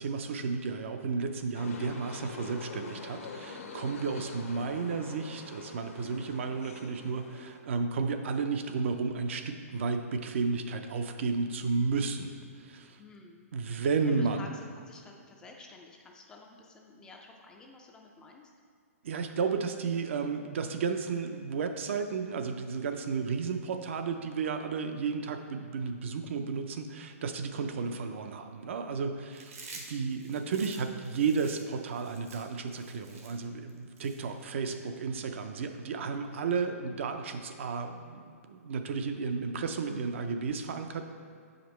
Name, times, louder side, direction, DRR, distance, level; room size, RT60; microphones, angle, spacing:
voice 1, 0.0-13.0 13.5-14.5 19.0-41.0, right 5 dB, 55° right, 7 dB, 0.5 m, -33 dB
sound 1, 1.5-7.6, left 4 dB, 65° left, 0.7 m, -45 dB
voice 2, 3.8-4.2 13.0-13.5 13.8-18.5, left 3 dB, 10° left, 1 dB, 0.3 m, -52 dB
Chewing mastication, 29.3-34.8, right 3 dB, 70° right, 1.1 m, -50 dB
7.3 x 5.0 x 3.1 m, 2.2 s
hypercardioid pair, 160°, 8 cm